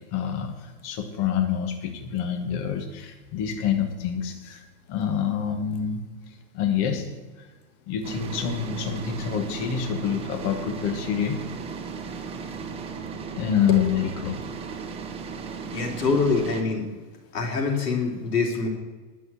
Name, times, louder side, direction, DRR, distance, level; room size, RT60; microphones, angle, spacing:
voice 1, 0.1-7.1 7.4-7.5 7.9-11.4 13.3-14.4, left 8 dB, 35° left, 5 dB, 1.2 m, -27 dB
sound 1, 8.0-16.6, right 5 dB, 15° right, 0.7 m, -36 dB
voice 2, 15.6-16.9 17.3-18.7, left 4 dB, 90° left, 0 dB, 3.4 m, -25 dB
11.0 x 6.1 x 8.5 m, 1.3 s
supercardioid pair, 145°, 47 cm